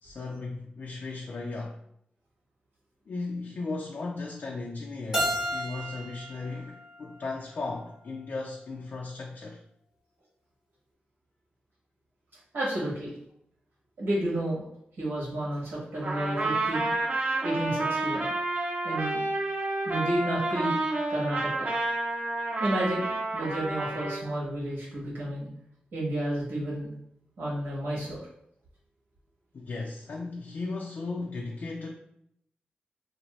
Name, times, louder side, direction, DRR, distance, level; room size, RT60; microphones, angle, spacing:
voice 1, 0.0-1.8 3.1-9.6 29.5-31.9, left 3 dB, 60° left, 0.4 m, -36 dB
Keyboard (musical), 5.1-8.0, equal, 15° right, 0.9 m, -33 dB
voice 2, 12.5-13.1 14.0-14.6 15.0-16.9 17.4-18.3 18.8-19.2 19.8-20.8 21.1-21.8 22.6-25.5 25.9-26.9 27.4-28.2, right 1 dB, 85° right, 1.2 m, -31 dB
Trumpet, 16.0-24.2, right 2 dB, 45° right, 0.7 m, -30 dB
2.8 x 2.5 x 3.0 m
cardioid pair, 65°, 4 cm